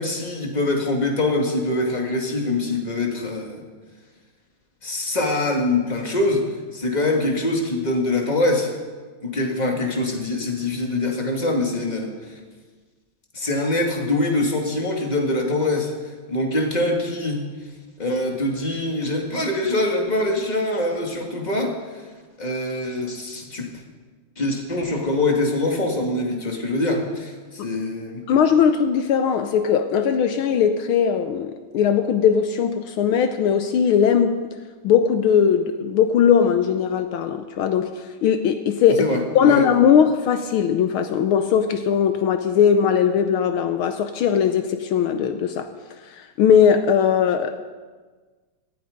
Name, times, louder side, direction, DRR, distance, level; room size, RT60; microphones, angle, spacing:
voice 1, 0.0-3.6 4.8-8.7 9.2-12.3 13.3-15.9 16.3-17.5 18.0-21.7 22.4-23.7 24.4-28.2 38.9-39.7, left 2 dB, 20° left, 2.2 m, -24 dB
voice 2, 28.3-34.4 34.8-39.0 39.3-45.7 46.1-47.6, left 8 dB, 75° left, 1.6 m, -19 dB
17.5 x 14.0 x 5.2 m
omnidirectional pair, 2.4 m